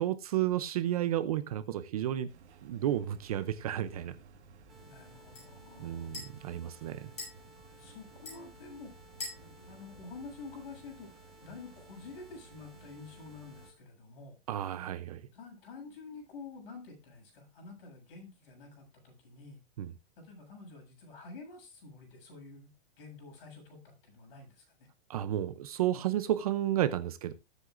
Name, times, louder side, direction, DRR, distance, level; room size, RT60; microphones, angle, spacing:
voice 1, 0.0-2.3 2.6-4.2 5.8-7.1 14.5-15.2 19.8-19.9 25.1-27.3, right 12 dB, 35° right, 12 dB, 0.6 m, -32 dB
sound 1, 2.3-13.7, right 6 dB, 80° right, 1.8 m, -57 dB
sound 2, 3.1-10.9, left 2 dB, 20° left, 7.3 m, -50 dB
sound 3, 4.7-13.7, left 1 dB, ahead, 1.6 m, -59 dB
voice 2, 4.9-6.1 6.7-6.9 7.8-8.9 9.4-14.4 15.3-19.6 20.2-22.7 23.0-24.6, left 4 dB, 55° left, 2 dB, 7.3 m, -49 dB
19.5 x 8.1 x 2.5 m, 0.25 s
supercardioid pair, 170°, 34 cm